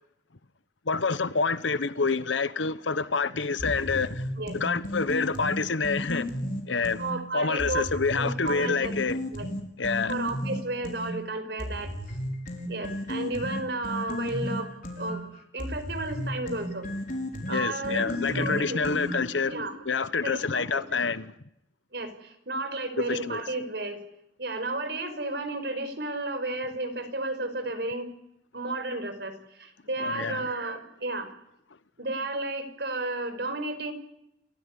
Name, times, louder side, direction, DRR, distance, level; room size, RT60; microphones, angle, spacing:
voice 1, 0.9-4.2 4.5-6.3 6.7-7.0 7.3-9.2 9.8-10.2 17.5-19.5 19.8-21.3 23.1-23.4 30.0-30.5, left 4 dB, 85° left, 1.1 m, -27 dB
sound 1, 3.6-7.1 7.6-11.1 11.6-19.4, equal, 45° left, 5.6 m, -34 dB
voice 2, 7.0-7.8 8.1-8.9 9.3-9.5 10.1-11.9 12.7-14.7 15.0-15.2 15.5-16.9 17.5-19.9 20.2-21.0 21.9-24.0 24.4-28.1 28.5-31.3 32.0-33.9, right 2 dB, 60° right, 5.2 m, -33 dB
30.0 x 17.0 x 9.8 m
head